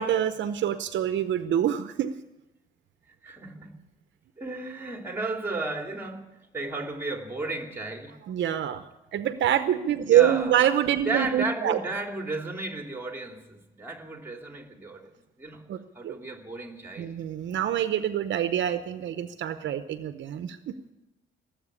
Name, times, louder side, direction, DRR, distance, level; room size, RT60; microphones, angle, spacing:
voice 1, 0.0-2.1 8.3-8.8 9.1-11.8 15.7-16.2 17.0-20.7, right 10 dB, 70° right, 10 dB, 0.8 m, -26 dB
voice 2, 3.2-3.7 4.4-8.2 10.0-10.5 11.0-15.1 15.4-15.6 15.9-17.2, right 3 dB, 10° right, 3 dB, 2.9 m, -34 dB
18.0 x 8.0 x 9.8 m, 0.99 s
cardioid pair, 90°, 20 cm